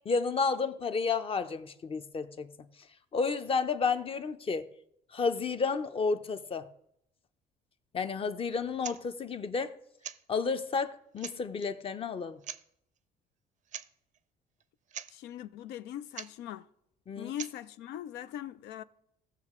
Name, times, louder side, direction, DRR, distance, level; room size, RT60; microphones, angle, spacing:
voice 1, 0.1-2.5 3.1-4.7 5.1-6.7 7.9-9.8 10.3-12.4 17.1-17.3, left 5 dB, 35° left, 0.7 m, -31 dB
sound 1, 8.8-9.0 10.0-10.2 10.8-10.9 11.2-11.7 12.4-12.6 13.7-13.9 14.1-14.2 14.6-14.7 14.9-15.1 16.1-16.3 17.4-17.6, right 9 dB, 50° right, 0.5 m, -42 dB
voice 2, 15.1-16.7 17.2-18.8, left 11 dB, 80° left, 0.5 m, -41 dB
16.5 x 6.5 x 3.7 m
cardioid pair, 110°, 17 cm